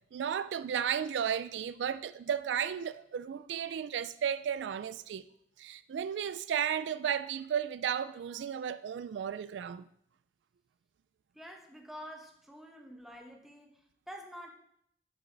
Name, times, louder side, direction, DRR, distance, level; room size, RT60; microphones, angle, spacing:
voice 1, 0.1-5.2 5.6-9.9, right 8 dB, 80° right, 0.3 m, -34 dB
voice 2, 11.3-14.5, equal, ahead, 1.0 m, -48 dB
8.5 x 5.8 x 4.0 m
head